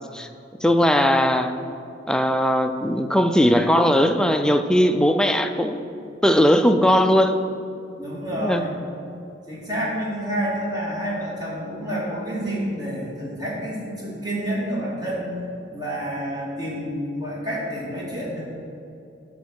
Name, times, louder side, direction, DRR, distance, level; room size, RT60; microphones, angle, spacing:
voice 1, 0.6-1.5 2.1-5.8 6.2-7.4 8.4-8.6, equal, 5° left, 7 dB, 0.4 m, -19 dB
voice 2, 8.0-8.7 9.5-15.3 15.7-18.4, equal, 20° right, -5 dB, 2.2 m, -28 dB
11.5 x 4.2 x 6.4 m, 2.6 s
head